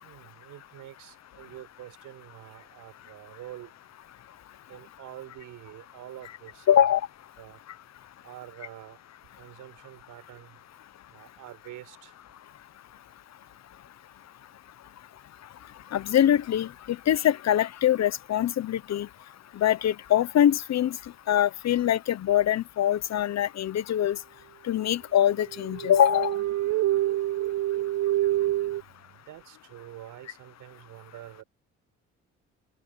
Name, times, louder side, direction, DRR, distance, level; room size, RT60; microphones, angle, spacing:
voice 1, 0.0-3.7 4.7-6.8 7.4-7.6 8.2-9.0 9.4-10.6 11.1-12.1 28.7-31.4, right 14 dB, 90° right, 7.8 m, -46 dB
voice 2, 6.7-7.0 15.9-16.7 17.1-19.1 19.6-21.0 21.3-24.2 24.7-26.3, left 10 dB, 60° left, 1.0 m, -23 dB
sound 1, 25.5-28.8, right 14 dB, 60° right, 0.4 m, -27 dB
cardioid pair, 90°, 30 cm